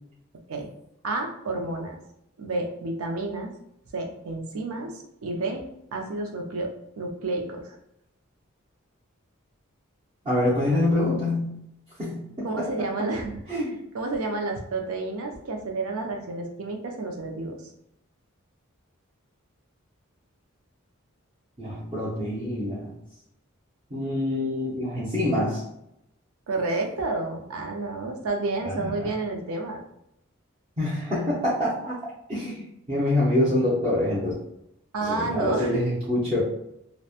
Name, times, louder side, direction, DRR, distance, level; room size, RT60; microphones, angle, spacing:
voice 1, 1.0-2.0 2.4-3.5 3.9-5.6 5.9-6.7 7.0-7.8 12.4-13.4 13.7-17.5 26.5-29.8 34.9-35.8, right 2 dB, 80° right, 3 dB, 0.5 m, -30 dB
voice 2, 10.2-11.5 12.0-12.7 13.5-13.7 21.6-22.9 23.9-25.6 28.6-28.9 30.8-32.0 32.3-34.3 35.0-36.4, left 1 dB, 30° right, -10 dB, 0.6 m, -26 dB
2.9 x 2.1 x 2.4 m, 0.80 s
head